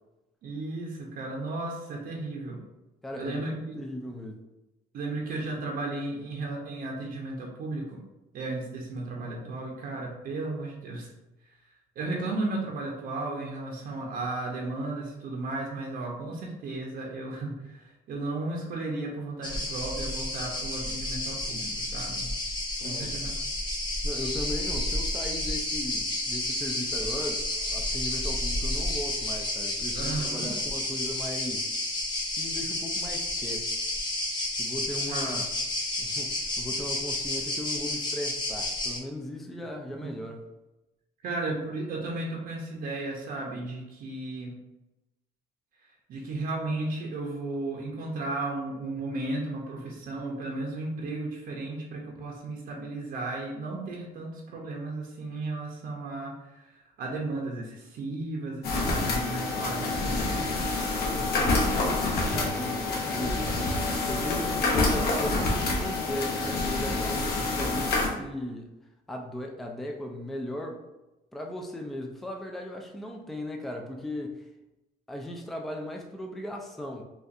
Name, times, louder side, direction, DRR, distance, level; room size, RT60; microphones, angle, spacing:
voice 1, 0.4-2.6 3.1-3.7 4.9-8.0 8.3-11.1 12.0-22.3 22.8-23.3 29.9-30.5 35.1-35.4 40.0-40.1 41.2-44.5 45.8-60.5 61.1-61.8, right 2 dB, 60° right, -1 dB, 0.7 m, -34 dB
voice 2, 3.0-4.4 22.8-23.3 24.0-31.7 32.4-33.7 34.6-35.5 36.0-40.4 62.3-63.8 64.1-68.7 69.1-70.8 71.3-74.4 75.1-77.0, left 1 dB, ahead, 2 dB, 0.3 m, -37 dB
sound 1, 19.4-39.0, left 1 dB, 25° left, 0.8 m, -31 dB
sound 2, 58.6-68.1, left 2 dB, 65° left, 0.8 m, -27 dB
4.0 x 2.4 x 2.5 m, 0.98 s
cardioid pair, 110°, 17 cm